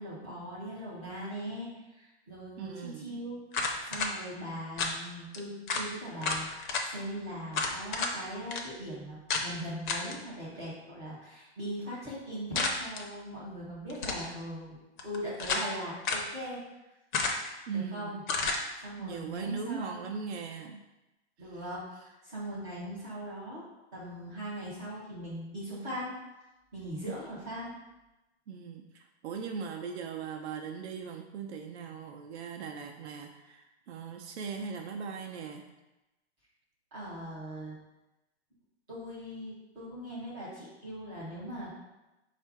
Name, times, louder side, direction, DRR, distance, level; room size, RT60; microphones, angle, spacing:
voice 1, 0.0-3.4 3.8-14.8 15.0-16.6 17.7-18.2 18.8-20.1 21.4-23.6 23.9-26.1 26.7-27.7 36.9-37.8 38.9-41.8, equal, 5° right, -11 dB, 0.3 m, -40 dB
voice 2, 2.6-3.2 17.7-18.2 19.0-20.8 21.5-21.6 27.0-27.1 28.5-35.7, right 6 dB, 70° right, 3 dB, 0.5 m, -39 dB
sound 1, 3.5-4.1 4.8-5.0 5.3-5.4 5.7-5.9 6.2-6.9 7.5-8.1 8.5-8.6 9.3-9.5 9.9-10.2 12.6-13.0 13.9-14.3 15.0-15.7 16.0-16.3 17.1-17.6 18.3-18.6, left 3 dB, 45° left, 0.6 m, -31 dB
4.4 x 2.4 x 4.5 m, 1.0 s
hypercardioid pair, 155°, 35 cm